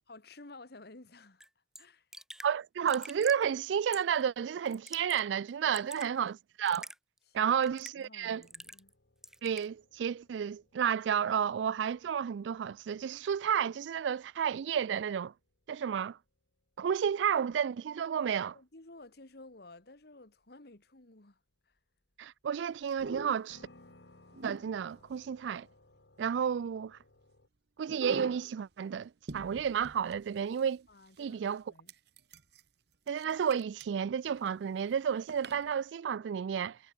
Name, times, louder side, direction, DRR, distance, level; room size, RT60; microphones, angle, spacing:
voice 1, 0.1-2.1 5.6-6.1 7.3-7.5 8.0-8.9 18.5-21.4 21.7-21.8 30.9-31.9, left 2 dB, 60° left, 1.9 m, -54 dB
Raindrop / Drip, 1.4-1.5 1.7-1.8 2.1-2.5 2.9-3.4 3.9-4.2 4.7-5.2 5.5-6.1 6.7-7.0 7.6-8.0 8.4-8.9 9.2-9.7, right 1 dB, 5° right, 0.6 m, -46 dB
voice 2, 2.4-6.9 7.3-8.4 9.4-15.3 15.7-16.2 16.8-18.6 22.2-23.6 24.4-25.7 26.2-27.0 27.8-30.8 31.2-31.6 33.1-36.8, right 8 dB, 90° right, 0.4 m, -31 dB
sound 1, 8.3-27.5, left 2 dB, 80° left, 2.5 m, -65 dB
sound 2, 22.9-23.5 24.3-25.1 27.9-28.6 29.0-29.1 29.3-30.7 31.2-31.3 31.9-32.6 33.1-33.8 34.3-34.5 35.3-35.7, right 3 dB, 65° right, 1.1 m, -43 dB
head